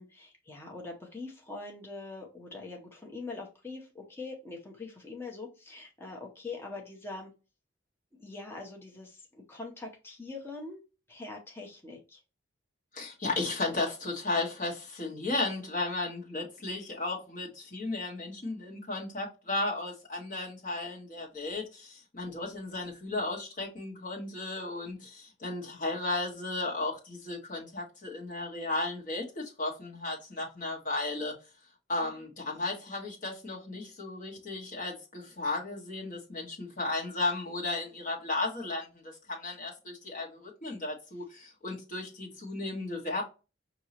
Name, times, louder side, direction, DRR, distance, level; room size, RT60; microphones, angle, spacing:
voice 1, 0.0-7.3 8.2-10.8 11.1-12.2, left 3 dB, 10° left, 0.8 m, -43 dB
voice 2, 12.9-31.3 31.9-39.0 39.3-43.2, left 2 dB, 40° left, 1.4 m, -34 dB
5.3 x 2.8 x 2.9 m
head